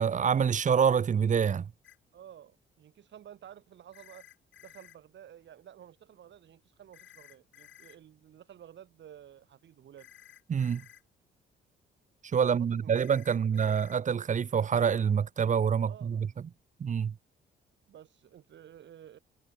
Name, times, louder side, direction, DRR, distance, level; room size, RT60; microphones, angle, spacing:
voice 1, 0.0-1.7 10.5-10.8 12.3-16.3 16.8-17.1, right 7 dB, 40° right, 0.9 m, -26 dB
sound 1, 1.8-2.0 3.9-5.0 6.9-8.0 10.0-11.0 12.9-14.0, left 11 dB, 70° left, 4.8 m, -55 dB
voice 2, 2.1-4.3 4.6-10.1 12.4-13.0 13.3-13.7 15.8-16.3 17.9-19.2, right 10 dB, 65° right, 4.5 m, -52 dB
cardioid pair, 90°, 20 cm